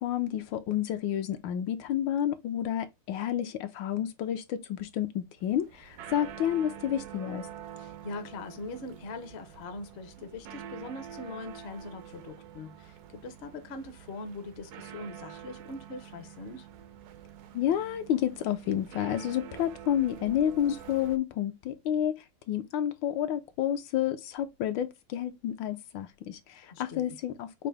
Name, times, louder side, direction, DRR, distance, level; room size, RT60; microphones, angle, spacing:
voice 1, 0.0-7.5 17.5-27.7, left 10 dB, 75° left, 1.3 m, -30 dB
sound 1, 5.4-21.2, right 9 dB, 70° right, 0.9 m, -46 dB
voice 2, 7.8-16.7 26.7-27.2, left 2 dB, 55° left, 0.7 m, -42 dB
6.1 x 2.6 x 3.3 m
omnidirectional pair, 2.2 m